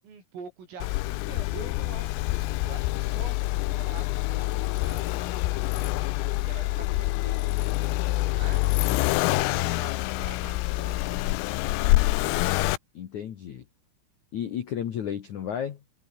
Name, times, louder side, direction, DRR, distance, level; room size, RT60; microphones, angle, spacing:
voice 1, 0.0-6.1 6.4-7.8 8.3-11.4, right 5 dB, 75° right, 10.5 m, -46 dB
Accelerating revving vroom, 0.8-12.8, left 20 dB, 85° left, 3.5 m, -26 dB
sound 1, 3.1-8.9, left 9 dB, 50° left, 3.0 m, -49 dB
voice 2, 12.9-13.6 14.3-15.8, left 9 dB, 65° left, 1.8 m, -32 dB
omnidirectional pair, 5.9 m